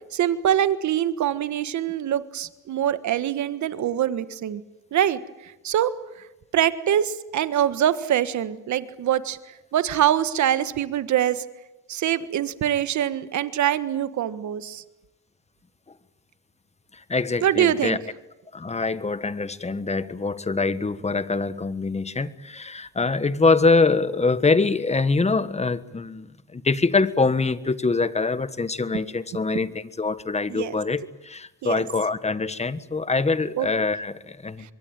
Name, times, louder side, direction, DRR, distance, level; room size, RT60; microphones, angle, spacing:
voice 1, 0.1-4.6 4.9-5.2 5.6-5.9 6.5-9.4 9.7-11.4 11.9-14.8 17.4-18.0 30.5-30.7 31.6-31.8 33.5-33.7, right 10 dB, 70° right, 13 dB, 1.6 m, -24 dB
voice 2, 16.9-18.0 18.5-34.7, left 3 dB, 20° left, 14 dB, 1.4 m, -24 dB
25.5 x 23.0 x 9.0 m, 0.98 s
cardioid pair, 90°, 30 cm